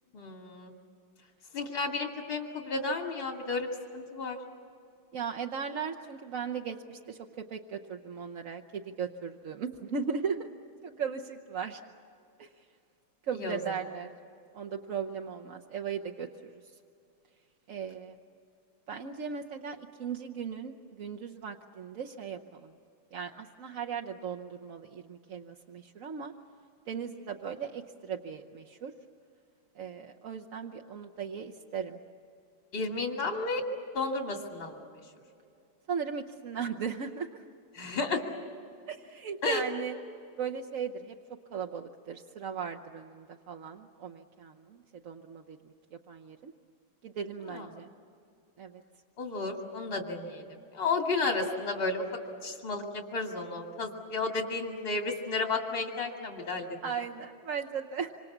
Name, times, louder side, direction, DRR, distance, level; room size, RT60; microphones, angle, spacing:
voice 1, 0.1-0.7 1.5-4.4 13.4-13.6 32.7-33.6 33.9-34.8 37.7-38.2 39.4-39.6 47.5-47.7 49.2-50.4 50.7-52.0 52.4-56.7, left 3 dB, 75° left, 2 dB, 3.0 m, -32 dB
voice 2, 5.1-10.5 10.8-11.8 12.4-12.5 13.2-14.1 14.5-16.5 17.7-18.1 18.9-22.7 23.1-26.3 26.9-28.9 29.8-32.0 35.9-37.4 38.9-40.0 40.4-41.2 41.5-46.5 47.0-47.9 48.6-48.8 56.8-58.1, right 6 dB, 50° right, 3 dB, 1.1 m, -37 dB
26.5 x 26.0 x 7.3 m, 2.5 s
omnidirectional pair, 2.1 m